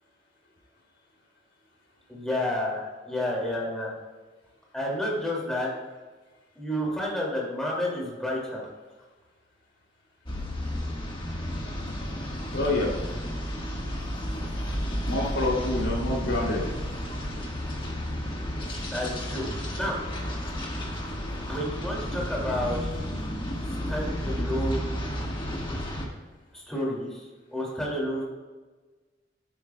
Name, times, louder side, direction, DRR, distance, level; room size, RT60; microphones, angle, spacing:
voice 1, 2.1-3.9 4.7-5.7 6.6-8.7 14.6-14.7 18.9-19.5 19.7-20.0 21.5-22.8 23.9-25.0 25.7-25.8 26.5-27.2 27.5-28.2, left 1 dB, 5° left, -4 dB, 2.4 m, -30 dB
sound 1, 10.3-26.1, equal, 25° left, 1.5 m, -32 dB
voice 2, 12.5-12.9 15.0-16.6, left 2 dB, 80° left, -2 dB, 2.9 m, -27 dB
11.0 x 10.0 x 2.3 m, 1.3 s
head